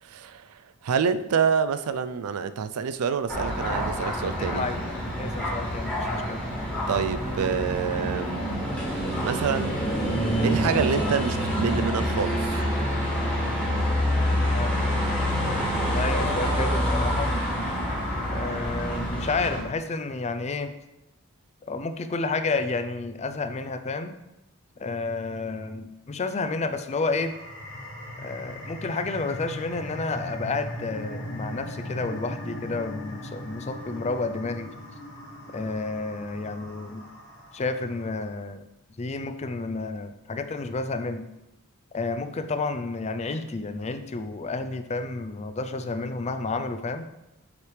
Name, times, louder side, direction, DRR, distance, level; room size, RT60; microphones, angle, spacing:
voice 1, 0.0-4.6 6.9-8.4 9.2-9.8 10.4-12.6, right 6 dB, 75° right, 13 dB, 0.4 m, -27 dB
sound 1, 3.3-19.6, equal, 5° left, 1.6 m, -27 dB
voice 2, 4.4-4.8 5.2-6.4 14.5-14.7 15.8-17.3 18.3-20.7 21.6-24.1 24.8-27.3 28.2-34.7 35.5-37.0 37.5-38.6 39.0-41.2 41.9-47.1, left 3 dB, 30° left, 9 dB, 0.4 m, -30 dB
sound 2, 26.9-38.1, left 1 dB, 75° left, 2.4 m, -39 dB
7.2 x 3.3 x 4.8 m, 0.92 s
head